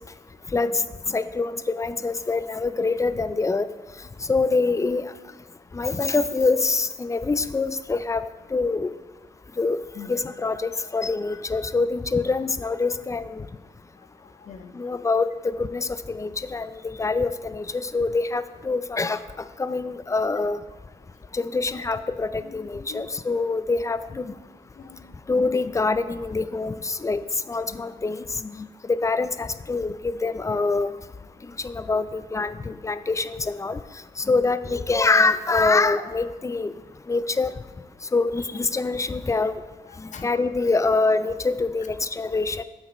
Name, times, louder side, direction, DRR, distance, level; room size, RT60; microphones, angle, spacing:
voice 1, 0.5-0.8 1.1-3.7 4.3-5.1 5.7-8.2 8.5-8.9 9.6-9.8 10.1-13.5 14.7-20.6 21.3-24.3 25.3-27.2 27.5-30.9 31.6-33.8 34.2-36.7 37.1-37.5 38.1-39.6 40.0-42.6, left 3 dB, 20° left, 13 dB, 0.4 m, -25 dB
voice 2, 14.2-14.8 22.4-23.1 24.1-24.4 24.7-25.2 39.8-40.3, left 6 dB, 60° left, 9 dB, 0.7 m, -44 dB
7.5 x 6.3 x 4.2 m, 1.2 s
cardioid pair, 80°, 14 cm